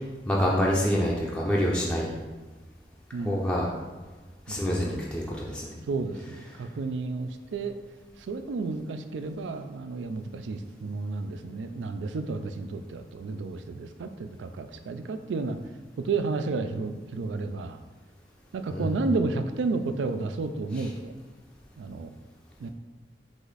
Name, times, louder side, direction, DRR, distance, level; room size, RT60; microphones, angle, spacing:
voice 1, 0.3-2.2 3.2-3.7 4.5-5.8 18.7-18.9 20.8-20.9, equal, 5° left, -4 dB, 0.4 m, -26 dB
voice 2, 3.1-3.5 4.5-4.7 5.9-7.7 8.2-15.6 16.0-17.8 18.5-21.1 21.8-22.1 22.6-22.7, right 3 dB, 85° right, 9 dB, 0.4 m, -32 dB
4.9 x 2.5 x 4.0 m, 1.2 s
head